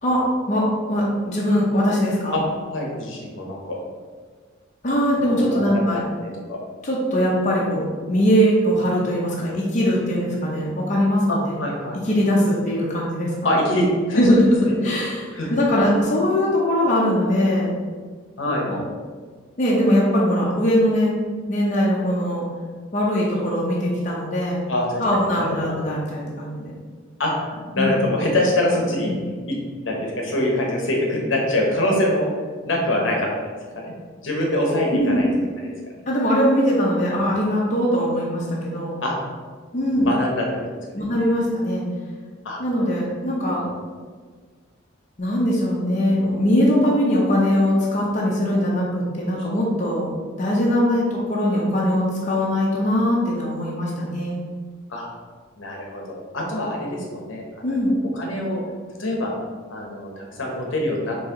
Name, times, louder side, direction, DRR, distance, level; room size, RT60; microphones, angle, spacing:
voice 1, 0.0-2.4 4.8-6.0 6.8-11.6 12.1-13.5 14.2-14.4 14.8-17.7 18.4-18.8 19.6-21.1 21.5-22.4 22.9-24.6 25.0-26.7 27.8-27.9 29.1-29.2 34.9-35.2 36.1-39.0 39.7-40.1 40.9-41.8 42.6-43.6 45.2-50.1 50.4-54.4 57.6-57.9, equal, 40° left, -5 dB, 0.7 m, -21 dB
voice 2, 2.7-3.8 5.4-5.6 5.9-6.0 6.5-6.6 11.3-12.0 13.4-14.3 14.7-14.8 15.3-15.5 18.4-18.7 24.7-25.7 27.2-27.3 27.7-29.1 29.5-29.6 29.8-32.3 32.7-33.4 33.8-33.9 34.2-35.3 35.6-36.0 39.0-39.2 40.0-41.1 42.4-42.6 43.6-43.8 54.9-55.1 55.6-57.4 57.7-57.8 58.1-58.6 59.0-59.3 59.7-61.2, left 1 dB, 70° left, -1 dB, 0.9 m, -24 dB
4.5 x 3.0 x 3.7 m, 1.5 s
head